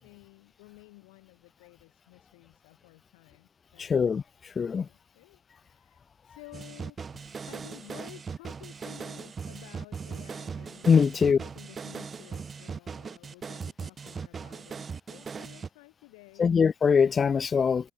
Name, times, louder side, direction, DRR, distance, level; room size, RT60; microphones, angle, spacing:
voice 1, 0.0-4.1 4.8-7.2 7.5-16.5, left 29 dB, 65° left, 4.7 m, -53 dB
voice 2, 3.8-4.2 4.6-4.9 10.9-11.4 16.4-17.9, left 6 dB, 30° left, 0.4 m, -22 dB
sound 1, 6.5-15.7, right 5 dB, 30° right, 5.9 m, -39 dB
figure-of-eight pair, 60°, 0 cm